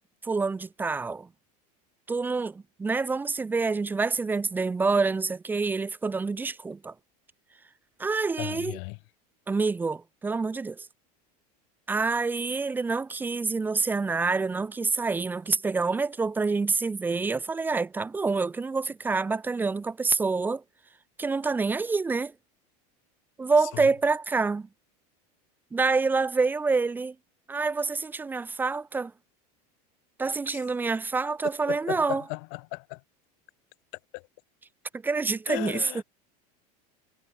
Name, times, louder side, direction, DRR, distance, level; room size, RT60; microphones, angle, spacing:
voice 1, 0.2-1.3 2.1-6.9 8.0-8.8 9.5-10.9 11.9-20.6 21.2-22.3 23.4-24.7 25.7-27.1 27.5-29.1 30.2-32.2 35.0-35.9, right 4 dB, 10° right, 0.6 m, -27 dB
voice 2, 8.4-9.0 23.8-23.9 30.5-30.6 31.6-33.0 34.1-34.3 35.5-36.0, left 40 dB or more, 60° left, 1.2 m, -36 dB
supercardioid pair, 150°, 20 cm